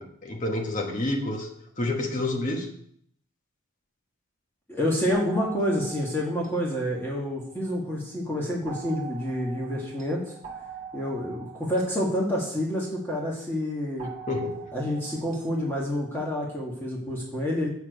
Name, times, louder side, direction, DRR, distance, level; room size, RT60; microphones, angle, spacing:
voice 1, 0.0-1.5 1.8-2.7 14.3-14.6, left 2 dB, 35° left, 2 dB, 1.2 m, -28 dB
voice 2, 4.7-10.3 10.9-14.1 14.7-17.7, equal, 10° left, -4 dB, 1.5 m, -28 dB
sound 1, 5.1-7.9 8.7-13.2 14.0-15.8, right 6 dB, 30° right, 2.0 m, -44 dB
7.1 x 6.4 x 5.2 m, 0.65 s
head